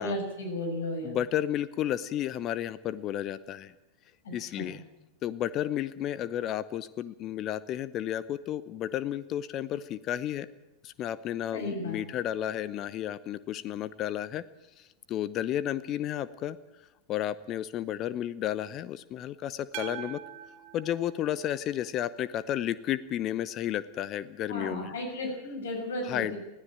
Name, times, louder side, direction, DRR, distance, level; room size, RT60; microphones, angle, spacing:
voice 1, 0.0-1.2 4.5-4.7 11.5-12.0 24.5-26.4, left 1 dB, 60° left, 3 dB, 6.4 m, -34 dB
voice 2, 1.0-3.7 4.3-4.8 5.2-10.5 10.8-14.4 14.8-16.6 17.1-20.2 20.7-24.9 26.0-26.3, left 11 dB, 35° left, 17 dB, 0.7 m, -32 dB
sound 1, 19.7-22.0, right 11 dB, 45° right, 2.5 m, -43 dB
21.0 x 15.0 x 8.9 m, 1.0 s
figure-of-eight pair, 90°, 0 cm